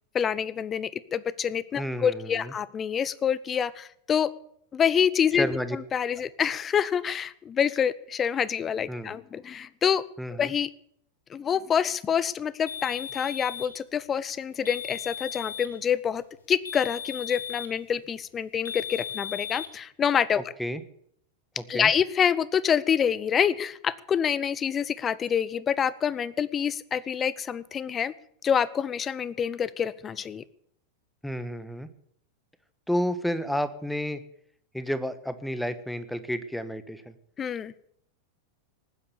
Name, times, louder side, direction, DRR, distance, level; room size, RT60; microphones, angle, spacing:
voice 1, 0.1-4.3 4.7-10.0 10.4-10.7 11.3-16.2 16.5-20.4 21.7-28.1 28.4-30.4 37.4-37.7, left 8 dB, 25° left, 19 dB, 0.8 m, -27 dB
voice 2, 1.8-2.5 5.3-5.8 8.9-9.1 10.2-10.5 20.4-20.8 21.6-21.9 31.2-31.9 32.9-34.2 34.7-37.1, equal, ahead, 12 dB, 1.4 m, -31 dB
sound 1, 12.7-13.8 14.7-15.8 16.7-17.8 18.7-19.7, left 8 dB, 70° left, 2.4 m, -37 dB
19.0 x 10.0 x 7.0 m, 0.69 s
figure-of-eight pair, 90°, 0 cm